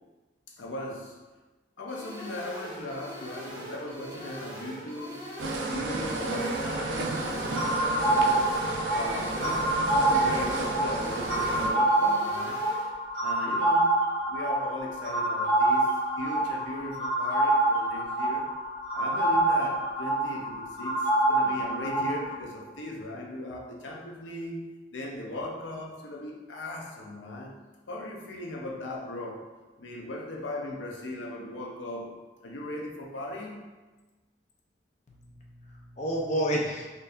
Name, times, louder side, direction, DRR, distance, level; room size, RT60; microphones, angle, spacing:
voice 1, 0.5-1.2 1.8-5.3 5.6-8.5 8.8-12.7 13.2-14.0 14.3-18.5 18.9-27.6 27.9-29.5 29.8-33.8, left 1 dB, 90° left, 0 dB, 0.6 m, -38 dB
sound 1, 1.9-12.9, right 1 dB, 20° right, 1.0 m, -42 dB
sound 2, 5.4-11.7, right 2 dB, 80° right, 0.5 m, -32 dB
sound 3, 7.5-22.3, right 2 dB, 60° right, 1.0 m, -26 dB
voice 2, 35.1-36.8, equal, 40° left, -2 dB, 0.6 m, -30 dB
4.2 x 2.6 x 2.5 m, 1.2 s
head